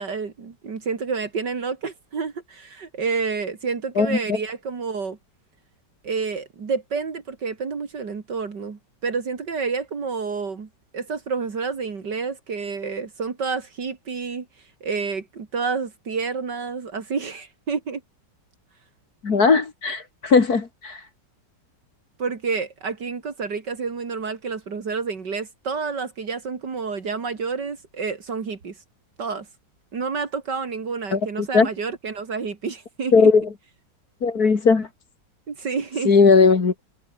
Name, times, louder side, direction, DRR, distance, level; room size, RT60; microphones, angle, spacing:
voice 1, 0.0-5.2 6.0-10.7 10.9-14.5 14.8-18.0 22.2-28.7 29.2-29.5 29.9-33.3 35.5-36.1, right 5 dB, 70° right, 3.1 m, -29 dB
voice 2, 19.2-21.1 31.1-31.7 33.1-33.5 34.2-34.9 36.1-36.8, left 4 dB, 55° left, 2.9 m, -18 dB
omnidirectional pair, 1.9 m